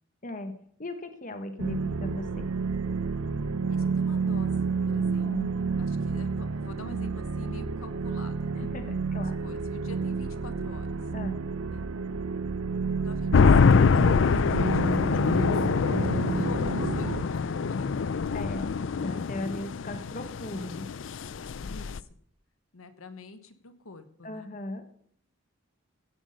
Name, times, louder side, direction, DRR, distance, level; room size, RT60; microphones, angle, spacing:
voice 1, 0.2-0.5 0.8-2.5 5.2-5.5 8.6-9.4 11.1-11.4 18.3-18.7 19.0-20.9 24.2-24.8, left 2 dB, 40° left, 8 dB, 1.1 m, -37 dB
sound 1, 1.6-17.2, right 4 dB, 90° right, 0.7 m, -30 dB
voice 2, 3.7-5.5 5.8-8.7 9.1-10.9 11.7-11.9 12.8-15.6 16.1-17.9 21.6-22.1 22.7-24.5, left 2 dB, 85° left, 10 dB, 1.3 m, -46 dB
sound 2, 13.3-22.0, left 5 dB, 60° left, 0.4 m, -24 dB
16.0 x 8.3 x 5.3 m, 0.65 s
head